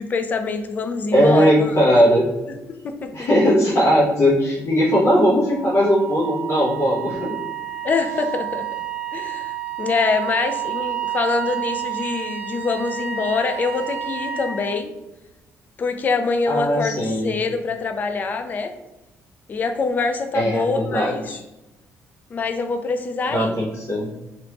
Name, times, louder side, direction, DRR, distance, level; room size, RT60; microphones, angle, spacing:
voice 1, 0.0-1.8 2.5-3.3 7.8-8.6 9.1-14.9 15.8-18.7 19.5-21.2 22.3-23.6, left 4 dB, 30° left, 6 dB, 0.3 m, -24 dB
voice 2, 1.1-2.3 3.1-7.3 16.5-17.3 20.3-21.4 23.3-24.1, equal, 50° left, -6 dB, 0.9 m, -18 dB
Wind instrument woodwind instrument, 5.2-14.6, right 10 dB, 15° right, 1.5 m, -30 dB
3.4 x 2.5 x 2.9 m, 0.98 s
cardioid pair, 145°, 6 cm